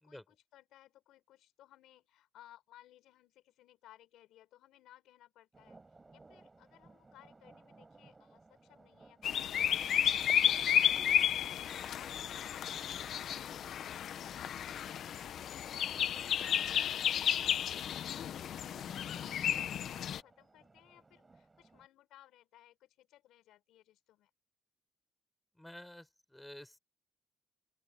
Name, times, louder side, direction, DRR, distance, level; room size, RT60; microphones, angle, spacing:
voice 1, 0.0-12.5 12.8-14.0 14.3-24.3, left 14 dB, 85° left, 6.0 m, -62 dB
sound 1, 5.5-21.9, right 3 dB, 25° right, 6.4 m, -63 dB
sound 2, 9.2-20.2, left 9 dB, 70° left, 0.9 m, -32 dB
voice 2, 25.6-26.8, left 1 dB, 5° left, 6.0 m, -51 dB
open air
cardioid pair, 75°, 0 cm